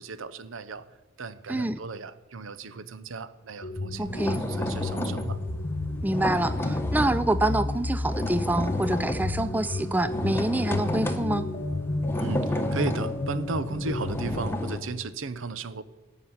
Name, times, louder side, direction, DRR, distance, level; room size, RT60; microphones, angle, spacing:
voice 1, 0.0-5.6 12.2-15.8, right 3 dB, 85° right, 14 dB, 0.8 m, -35 dB
voice 2, 1.5-1.8 4.0-4.4 6.0-11.5, right 1 dB, 10° right, 13 dB, 0.3 m, -26 dB
sound 1, 3.6-14.4, left 2 dB, 40° left, 1.0 m, -32 dB
sound 2, 4.0-7.3 7.6-14.8, left 1 dB, 10° left, 1.0 m, -32 dB
14.5 x 5.8 x 9.4 m, 1.2 s
head